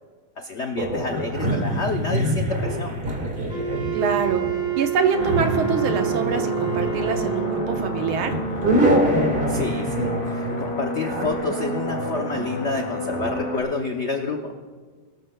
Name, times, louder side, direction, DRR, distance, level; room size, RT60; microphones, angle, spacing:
voice 1, 0.4-3.0 9.5-14.5, left 3 dB, 80° left, 3 dB, 0.6 m, -29 dB
sound 1, 0.8-13.4, right 1 dB, 25° right, 1.7 m, -26 dB
Wind instrument woodwind instrument, 3.5-7.8, right 12 dB, 5° right, 2.2 m, -28 dB
voice 2, 3.9-4.4 4.8-8.3, right 5 dB, 85° right, 5 dB, 1.8 m, -24 dB
sound 2, 5.1-13.6, left 1 dB, 35° left, 1.1 m, -30 dB
21.5 x 13.0 x 2.2 m, 1.5 s
omnidirectional pair, 2.2 m